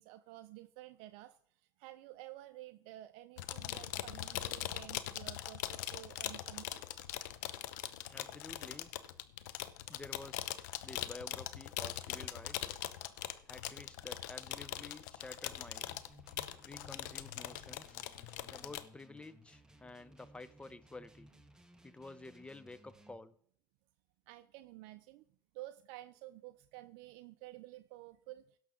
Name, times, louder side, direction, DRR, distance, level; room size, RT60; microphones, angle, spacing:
voice 1, 0.0-1.4 1.8-6.9 24.3-25.2 25.5-28.4, right 16 dB, 70° right, 0.4 m, -51 dB
sound 1, 3.4-18.8, left 13 dB, 75° left, 0.7 m, -41 dB
voice 2, 8.1-8.9 9.9-12.8 13.5-15.9 16.6-18.0 18.5-21.3 21.8-23.4, left 2 dB, 10° left, 0.7 m, -51 dB
sound 2, 15.8-23.2, right 1 dB, 5° right, 1.1 m, -61 dB
17.0 x 6.2 x 3.7 m
hypercardioid pair, 80°, 10 cm